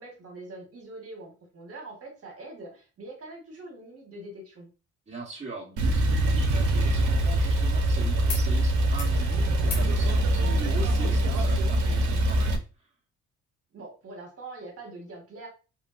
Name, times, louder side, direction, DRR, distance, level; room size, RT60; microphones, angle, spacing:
voice 1, 0.0-4.7 13.7-15.5, right 2 dB, 50° right, 1 dB, 1.3 m, -43 dB
voice 2, 5.1-12.6, right 2 dB, 20° right, -4 dB, 1.1 m, -40 dB
Male speech man speaking / Car / Idling, 5.8-12.6, right 1 dB, 80° right, 0.6 m, -23 dB
sound 1, 8.3-8.5 8.8-9.2 9.6-9.9 11.3-11.4, left 4 dB, 90° left, 1.1 m, -40 dB
3.1 x 2.4 x 2.4 m, 0.32 s
cardioid pair, 90°, 30 cm